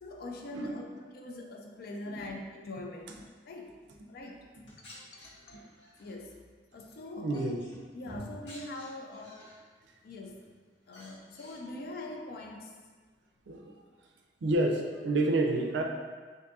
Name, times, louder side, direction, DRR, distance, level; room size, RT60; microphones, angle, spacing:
voice 1, 0.0-3.7 4.1-4.4 4.8-6.3 6.7-7.5 7.9-9.5 10.0-10.4 10.9-12.8, left 2 dB, 60° left, 1 dB, 0.4 m, -43 dB
sound 1, 4.5-6.1 6.7-7.0 7.3-9.6 10.0-10.5 10.8-11.6, equal, 90° left, 1.1 m, -50 dB
voice 2, 7.2-7.6 13.5-13.7 14.4-15.8, right 2 dB, 80° right, 2 dB, 0.4 m, -29 dB
2.6 x 2.6 x 3.5 m, 1.5 s
head